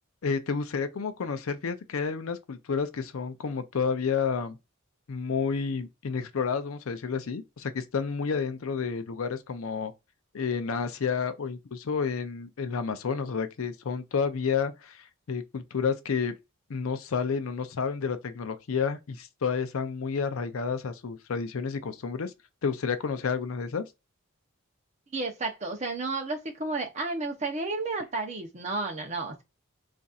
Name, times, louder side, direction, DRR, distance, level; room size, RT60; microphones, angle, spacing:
voice 1, 0.2-4.6 5.1-9.9 10.3-16.3 16.7-22.3 22.6-23.8, left 5 dB, 75° left, 0.5 m, -30 dB
voice 2, 25.1-29.4, right 3 dB, 30° right, 0.7 m, -32 dB
4.0 x 2.5 x 2.3 m
head